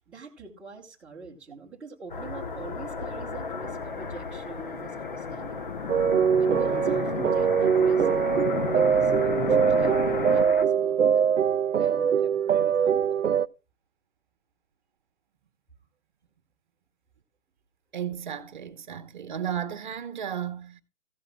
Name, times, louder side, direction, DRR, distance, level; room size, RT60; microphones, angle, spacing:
voice 1, 0.1-5.6 6.4-8.5 8.7-11.3 11.7-13.2, right 5 dB, 5° right, 1.1 m, -44 dB
sound 1, 2.1-10.7, left 4 dB, 40° left, 1.1 m, -35 dB
sound 2, 2.7-10.4, left 6 dB, 65° left, 0.9 m, -36 dB
sound 3, 5.9-13.5, right 7 dB, 80° right, 0.6 m, -23 dB
voice 2, 17.9-20.8, right 9 dB, 40° right, 1.1 m, -34 dB
15.5 x 11.0 x 2.3 m
figure-of-eight pair, 150°, 38 cm